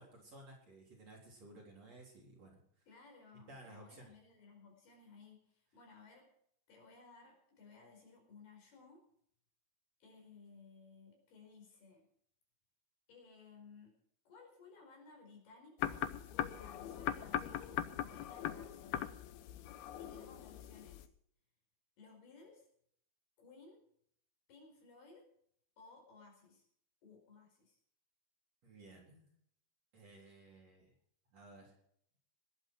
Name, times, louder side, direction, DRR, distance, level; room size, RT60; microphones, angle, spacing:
voice 1, 0.0-2.6 3.5-4.1 28.6-29.3 29.9-30.9 31.3-31.7, right 2 dB, 35° right, -2 dB, 4.7 m, -56 dB
voice 2, 2.9-6.3 6.7-9.1 10.0-12.1 13.1-14.0 14.2-16.0 16.4-19.1 20.0-21.1 22.0-22.7 23.4-23.8 24.5-25.3 25.8-26.7 27.0-27.8, left 4 dB, 60° left, 2 dB, 6.7 m, -59 dB
sound 1, 15.8-21.1, left 11 dB, 75° left, 2.4 m, -40 dB
20.0 x 10.5 x 4.8 m, 0.67 s
omnidirectional pair, 5.2 m